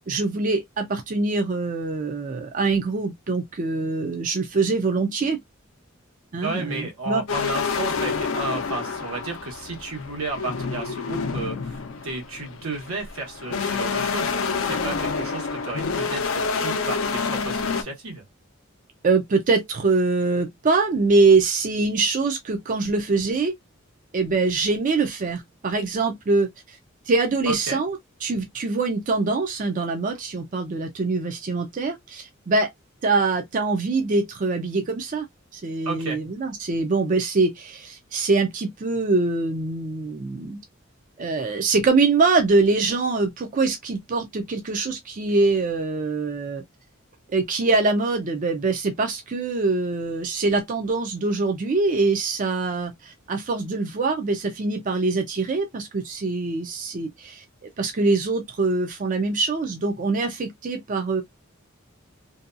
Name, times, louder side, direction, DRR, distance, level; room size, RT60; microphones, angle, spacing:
voice 1, 0.1-5.4 6.3-7.2 19.0-23.5 24.1-26.8 27.1-32.7 33.0-35.2 35.5-40.6 41.2-46.6 47.3-57.4 57.8-61.2, right 3 dB, 40° right, 0.4 m, -23 dB
voice 2, 6.4-18.2 27.5-27.8 35.8-36.2, right 2 dB, 90° right, 1.2 m, -33 dB
sound 1, 7.3-17.8, left 5 dB, 70° left, 0.5 m, -28 dB
2.7 x 2.2 x 2.5 m
head